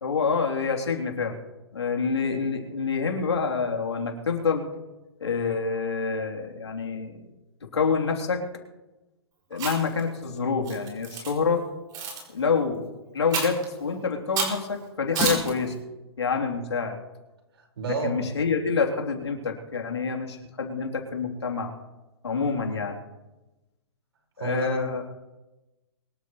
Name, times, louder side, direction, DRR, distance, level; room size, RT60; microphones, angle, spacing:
voice 1, 0.0-1.4 1.7-4.7 5.2-7.3 7.7-8.4 9.5-11.6 12.3-12.8 13.1-15.7 16.2-17.0 18.0-21.7 22.2-23.0 24.4-25.0, left 5 dB, 85° left, 1 dB, 3.3 m, -27 dB
Chewing mastication, 9.5-10.0 10.7-11.3 11.9-12.2 13.3-13.6 14.4-14.6 15.1-15.5, right 4 dB, 30° right, 5.6 m, -28 dB
voice 2, 17.5-18.3 24.4-24.8, right 4 dB, 70° right, 2 dB, 4.9 m, -31 dB
24.0 x 13.5 x 3.2 m, 1.1 s
hypercardioid pair, 130°, 14 cm